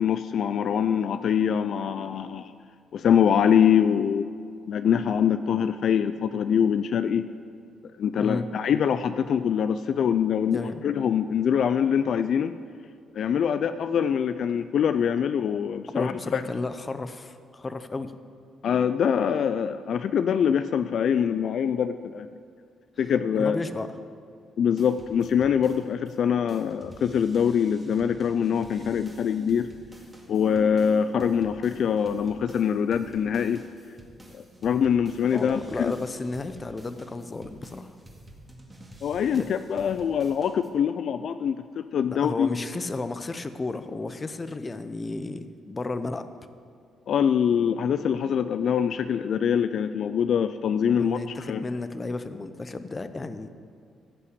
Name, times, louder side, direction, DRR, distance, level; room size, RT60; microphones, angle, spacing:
voice 1, 0.0-2.5 2.9-4.3 4.7-7.3 8.0-12.5 13.1-16.4 18.6-22.3 23.0-23.6 24.6-29.7 30.3-33.6 34.3-35.9 39.0-42.5 47.1-51.2 51.5-51.6, left 8 dB, 65° left, 11 dB, 0.4 m, -24 dB
voice 2, 8.2-8.5 10.4-10.8 15.9-18.1 23.3-23.9 35.3-38.0 39.3-39.5 42.1-46.3 50.9-53.5, left 3 dB, 25° left, 10 dB, 0.7 m, -33 dB
sound 1, 24.8-26.2 26.5-40.7, right 1 dB, 15° right, 2.0 m, -49 dB
15.0 x 5.6 x 8.3 m, 2.2 s
cardioid pair, 90°, 0 cm